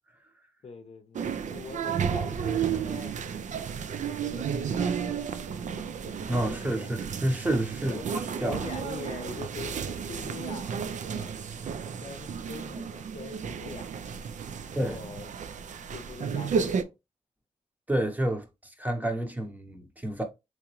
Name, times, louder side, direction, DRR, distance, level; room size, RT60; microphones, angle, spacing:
voice 1, 0.6-3.2 4.2-5.8 6.4-6.9 7.8-8.2 8.5-11.3 12.0-13.9 14.5-15.3 15.9-16.9, left 4 dB, 55° left, 0.6 m, -43 dB
sound 1, 1.1-16.8, right 7 dB, 70° right, 0.4 m, -32 dB
voice 2, 6.3-8.0 8.4-8.7 14.8-15.0 17.9-20.2, right 1 dB, 15° right, 0.8 m, -29 dB
3.5 x 3.0 x 3.0 m
cardioid pair, 85°, 13 cm